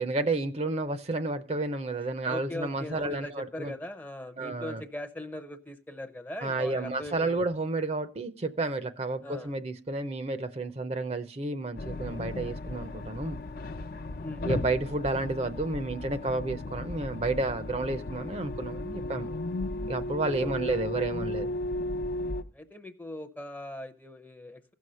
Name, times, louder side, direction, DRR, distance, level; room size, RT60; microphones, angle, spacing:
voice 1, 0.0-3.7 4.4-4.8 6.4-13.4 14.4-19.4 19.9-21.5, right 2 dB, 35° right, 0.6 m, -31 dB
voice 2, 2.3-7.4 9.2-9.5 14.2-14.5 20.4-20.8 22.2-24.7, left 1 dB, 10° left, 0.6 m, -40 dB
sound 1, 11.8-22.4, left 2 dB, 55° left, 0.5 m, -35 dB
15.5 x 6.4 x 5.5 m
head